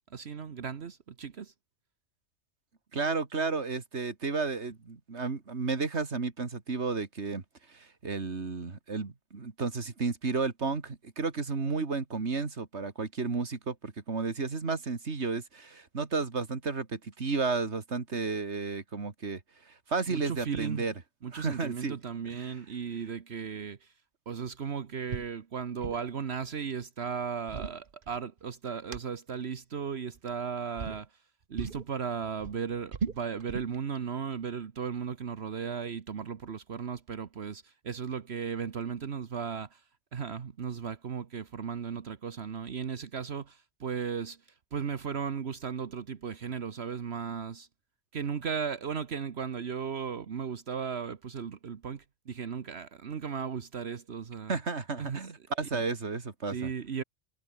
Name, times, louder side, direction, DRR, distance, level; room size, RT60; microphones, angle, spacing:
voice 1, 0.1-1.5 20.1-20.9 21.2-23.9 24.3-31.2 31.5-47.7 48.1-54.6 55.0-55.3 55.7-55.8 56.5-57.0, right 6 dB, 70° right, 1.4 m, -36 dB
voice 2, 2.9-7.4 7.7-19.4 19.7-20.9 21.3-22.0 22.3-22.4 54.5-56.7, right 4 dB, 90° right, 2.5 m, -32 dB
sound 1, 25.1-25.3 25.6-26.1 27.2-28.5 28.9-29.0 30.1-30.4 30.8-31.0 31.6-31.9 32.2-33.8, right 5 dB, 50° right, 1.4 m, -37 dB
omnidirectional pair, 1.1 m